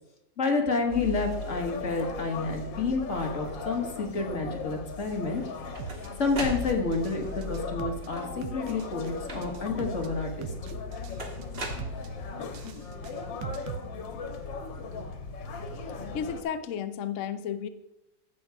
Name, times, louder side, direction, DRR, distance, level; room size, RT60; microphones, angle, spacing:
voice 1, 0.4-5.4 6.2-10.8, left 3 dB, 45° left, 3 dB, 1.7 m, -29 dB
sound 1, 0.9-16.4, left 4 dB, 85° left, 1.9 m, -38 dB
sound 2, 5.3-7.2 8.0-8.6 9.3-9.8 11.2-12.5, right 1 dB, 35° right, 1.7 m, -38 dB
sound 3, 5.8-6.1 6.4-7.2 7.4-8.1 8.4-9.1 9.4-10.1 10.4-11.2 11.4-12.1 12.4-13.8, right 7 dB, 75° right, 1.4 m, -40 dB
voice 2, 16.1-17.7, left 8 dB, 65° left, 11 dB, 0.7 m, -33 dB
15.0 x 6.2 x 4.8 m, 0.93 s
omnidirectional pair, 2.0 m